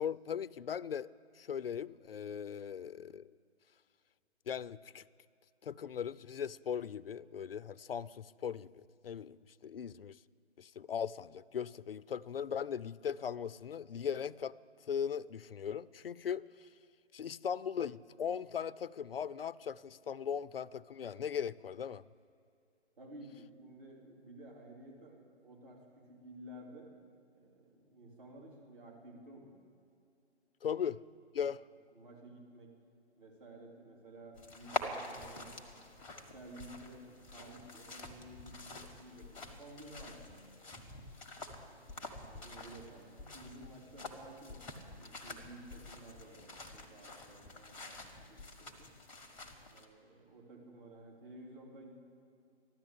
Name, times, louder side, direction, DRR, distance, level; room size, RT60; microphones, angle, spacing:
voice 1, 0.0-3.3 4.5-5.0 5.6-9.4 9.6-10.2 10.6-14.6 14.9-16.7 17.1-22.0 30.6-31.0 31.3-31.6, left 8 dB, 60° left, 0.4 m, -39 dB
voice 2, 23.0-27.0 27.3-29.6 31.4-31.5 31.9-32.7 33.2-40.7 41.7-48.9 49.7-51.9, right 1 dB, 50° right, 3.7 m, -54 dB
sound 1, 34.3-49.9, left 3 dB, 5° left, 0.8 m, -47 dB
13.5 x 12.0 x 8.4 m
figure-of-eight pair, 145°, 34 cm